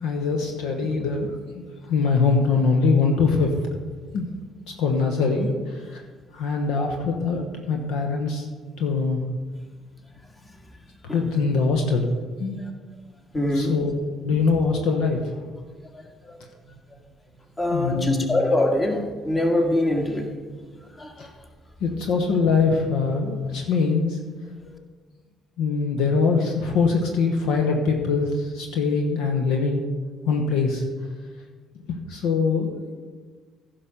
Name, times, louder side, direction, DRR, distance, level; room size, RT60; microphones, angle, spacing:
voice 1, 0.0-3.5 4.1-4.3 4.8-6.0 6.3-8.5 8.8-9.2 11.0-12.1 12.4-12.6 13.5-15.2 17.7-18.3 21.8-24.2 25.6-29.8 30.3-30.8 32.1-32.9, left 4 dB, 60° left, 3 dB, 1.0 m, -23 dB
voice 2, 13.3-13.7 15.9-16.4 17.6-20.3 21.0-21.3, left 1 dB, 25° left, 3 dB, 1.9 m, -24 dB
15.5 x 5.9 x 5.1 m, 1.4 s
figure-of-eight pair, 45°, 0 cm